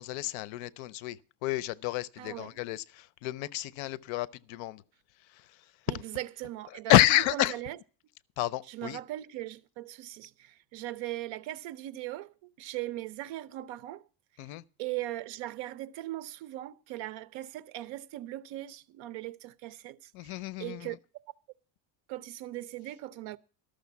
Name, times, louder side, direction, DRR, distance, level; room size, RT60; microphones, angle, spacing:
voice 1, 0.0-4.8 5.3-5.4 6.9-7.5 8.4-9.0 14.4-14.6 20.1-21.0, left 15 dB, 65° left, 0.7 m, -29 dB
voice 2, 2.2-2.6 5.9-7.8 8.7-14.0 14.8-20.3 20.6-21.0 22.1-23.4, right 15 dB, 60° right, 0.8 m, -39 dB
13.0 x 6.5 x 8.2 m
cardioid pair, 165°, 50 cm